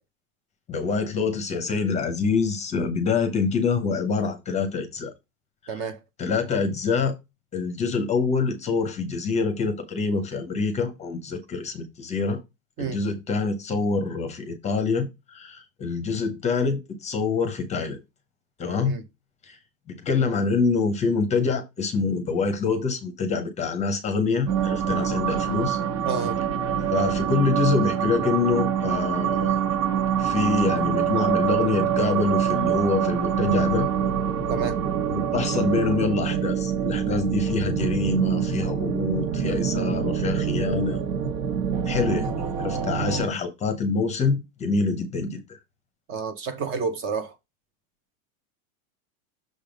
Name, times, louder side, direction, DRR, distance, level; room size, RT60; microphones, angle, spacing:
voice 1, 0.7-5.1 6.2-7.2 7.5-12.4 12.8-18.0 18.6-19.0 19.4-19.6 19.9-25.8 26.9-29.6 30.2-33.9 35.1-41.0 41.9-45.4, left 4 dB, 15° left, 0.7 m, -26 dB
voice 2, 5.7-6.0 12.8-13.0 18.8-19.0 26.0-26.4 34.5-34.8 42.1-42.3 46.1-47.3, right 5 dB, 30° right, 0.7 m, -30 dB
sound 1, 24.5-43.3, right 8 dB, 65° right, 1.4 m, -25 dB
6.5 x 3.5 x 5.0 m
supercardioid pair, 165°, 43 cm